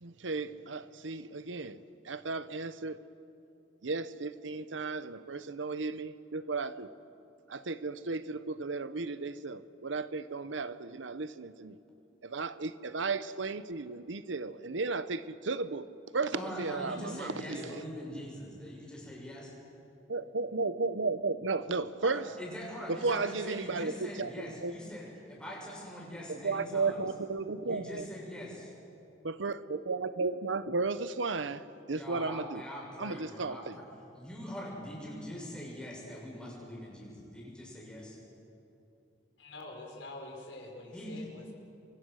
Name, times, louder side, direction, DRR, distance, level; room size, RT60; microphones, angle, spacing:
voice 1, 0.0-3.0 3.8-6.9 7.5-11.8 12.2-15.9 16.1-17.8 20.1-22.3 22.9-24.3 24.6-24.7 26.3-28.0 29.2-32.6 33.0-33.8, right 3 dB, 85° right, 0.9 m, -34 dB
voice 2, 16.3-19.5 22.0-27.0 27.6-28.7 31.9-33.8 34.1-38.2 40.9-41.2, equal, 5° left, 7.5 m, -43 dB
voice 3, 39.4-41.5, left 2 dB, 80° left, 4.7 m, -45 dB
29.0 x 24.0 x 6.5 m
head